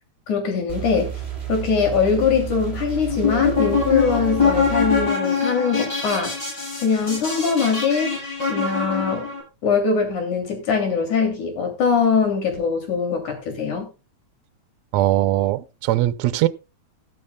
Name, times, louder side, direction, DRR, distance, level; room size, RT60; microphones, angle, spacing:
voice 1, 0.3-1.1 1.5-6.3 6.8-8.2 8.5-9.3 9.6-13.9, left 5 dB, 85° left, 4.3 m, -22 dB
sound 1, 0.7-5.1, right 10 dB, 20° right, 4.4 m, -31 dB
sound 2, 3.1-9.4, left 5 dB, 35° left, 8.6 m, -23 dB
voice 2, 14.9-16.5, right 15 dB, 75° right, 1.8 m, -20 dB
15.0 x 12.5 x 2.2 m
omnidirectional pair, 3.3 m